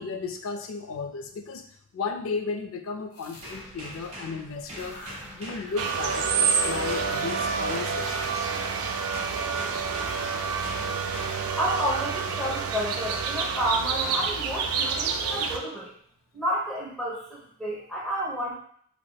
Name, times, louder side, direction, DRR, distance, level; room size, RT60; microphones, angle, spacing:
voice 1, 0.0-1.6 1.9-8.5 11.2-11.4, left 4 dB, 60° left, 6 dB, 0.4 m, -35 dB
sound 1, 3.1-4.1 4.5-6.1 6.3-12.7, left 1 dB, 80° left, 0.9 m, -48 dB
sound 2, 3.3-8.6 9.1-11.6 12.3-12.6, equal, 30° right, 1.1 m, -42 dB
sound 3, 5.8-15.6, right 5 dB, 75° right, 0.4 m, -28 dB
voice 2, 11.6-15.9 16.3-18.5, equal, 5° left, -6 dB, 0.9 m, -30 dB
3.2 x 3.2 x 2.2 m, 0.62 s
head